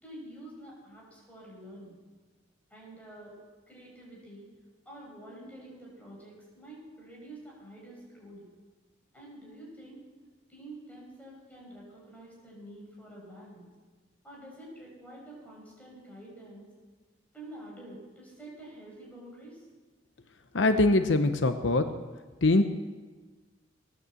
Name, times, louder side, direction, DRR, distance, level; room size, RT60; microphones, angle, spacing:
voice 1, 0.0-2.0 2.7-3.3 3.7-4.5 4.8-8.5 9.1-10.0 10.5-13.7 14.2-16.7 17.3-19.7, right 1 dB, 10° left, -4 dB, 6.3 m, -48 dB
voice 2, 20.5-21.8 22.4-22.6, left 2 dB, 80° left, 8 dB, 0.9 m, -22 dB
19.0 x 9.3 x 7.8 m, 1.3 s
head